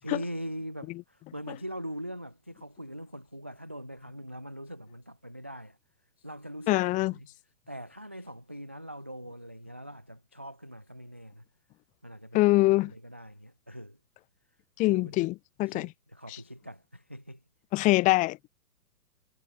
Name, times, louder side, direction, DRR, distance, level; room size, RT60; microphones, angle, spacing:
voice 1, 0.0-5.8 6.2-7.3 7.7-11.4 12.0-14.0 14.8-15.2 15.6-17.4, equal, 10° right, 0.4 m, -42 dB
voice 2, 6.7-7.1 12.3-12.9 14.8-15.9 16.3-16.4 17.7-18.5, left 19 dB, 15° left, 0.9 m, -24 dB
figure-of-eight pair, 125°, 48 cm